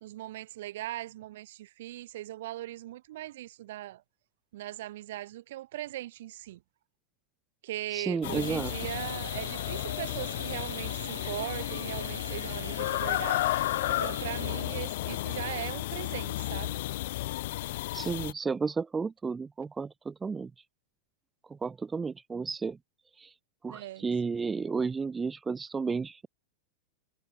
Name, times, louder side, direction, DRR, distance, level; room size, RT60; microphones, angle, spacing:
voice 1, 0.0-4.0 4.5-6.6 7.6-13.4 13.9-16.8 23.7-24.0, right 15 dB, 55° right, 1.5 m, -39 dB
voice 2, 7.9-8.7 17.9-20.5 21.4-22.8 23.2-23.3 23.6-26.3, right 5 dB, 15° right, 0.4 m, -32 dB
sound 1, 8.2-18.3, left 17 dB, 55° left, 1.3 m, -33 dB
sound 2, 8.4-14.6, right 5 dB, 75° right, 0.8 m, -44 dB
figure-of-eight pair, 90°, 0 cm